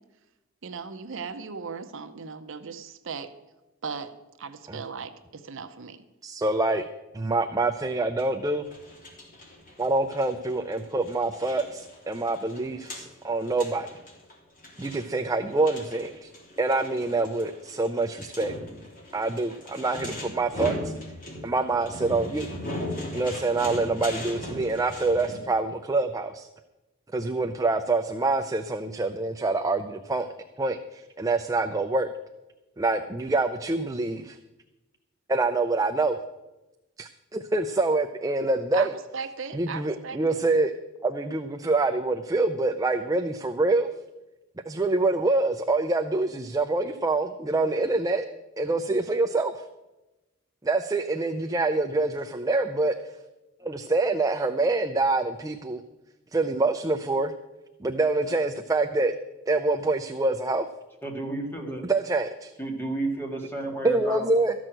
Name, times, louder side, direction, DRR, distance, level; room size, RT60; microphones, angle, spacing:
voice 1, 0.6-3.3 3.8-4.1 4.4-6.0 38.7-38.9 39.1-40.4, right 5 dB, 65° right, 9 dB, 0.8 m, -37 dB
voice 2, 6.2-6.8 7.1-8.7 9.8-13.9 14.8-16.3 16.6-18.6 19.1-20.9 21.4-22.5 23.1-26.5 27.1-30.3 30.6-32.1 32.8-34.4 35.3-36.2 37.0-38.9 39.5-40.7 41.0-43.9 44.7-48.3 48.6-49.6 50.6-52.9 53.6-55.8 56.3-57.3 57.8-59.1 59.5-60.7 61.8-62.5 63.8-64.5, right 2 dB, 15° right, 7 dB, 0.5 m, -26 dB
sound 1, 8.2-25.4, left 1 dB, 40° left, 3.3 m, -39 dB
voice 3, 61.0-61.9 62.6-64.3, right 1 dB, 10° left, 1 dB, 2.1 m, -31 dB
13.5 x 6.2 x 8.9 m, 1.0 s
head